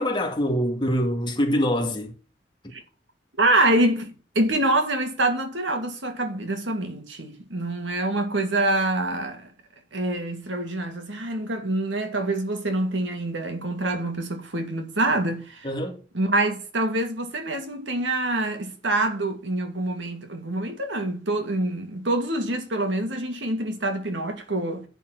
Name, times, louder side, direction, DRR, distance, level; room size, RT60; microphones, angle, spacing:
voice 1, 0.0-2.1 15.6-16.0, equal, 25° left, 2.2 m, -24 dB
voice 2, 3.4-9.5 9.9-15.7 16.1-24.9, right 2 dB, 90° right, 2.4 m, -26 dB
10.5 x 4.6 x 6.0 m
head